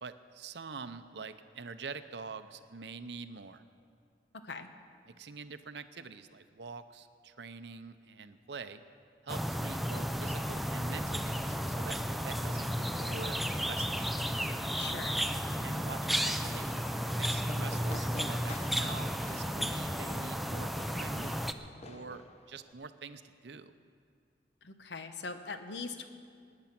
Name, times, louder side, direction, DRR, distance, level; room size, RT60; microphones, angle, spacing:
voice 1, 0.0-3.6 5.1-8.8 9.2-14.1 15.6-16.9 17.2-23.7, right 4 dB, 75° right, 11 dB, 0.7 m, -46 dB
sound 1, 9.3-21.5, equal, ahead, 0.4 m, -33 dB
voice 2, 14.8-15.2 24.6-26.1, left 4 dB, 80° left, 8 dB, 1.0 m, -41 dB
Fireworks, 17.2-22.7, left 2 dB, 35° left, 0.7 m, -48 dB
19.0 x 9.7 x 5.9 m, 2.2 s
head